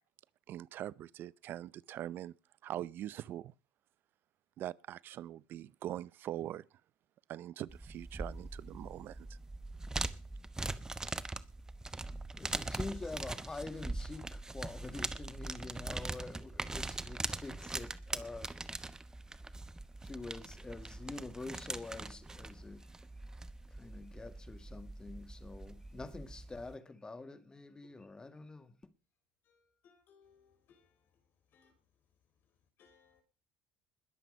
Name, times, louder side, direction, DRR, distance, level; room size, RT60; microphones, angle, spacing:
voice 1, 0.5-2.3 2.6-3.5 4.6-6.6 7.3-9.4, right 12 dB, 55° right, 0.6 m, -42 dB
sound 1, 7.7-26.8, right 2 dB, 15° right, 1.0 m, -42 dB
voice 2, 12.4-18.5 20.0-22.9 23.8-28.8, left 3 dB, 20° left, 2.1 m, -46 dB
voice 3, 29.8-30.9 31.5-31.7 32.8-33.2, left 6 dB, 55° left, 4.9 m, -66 dB
20.5 x 7.7 x 5.5 m
supercardioid pair, 85°, 4 cm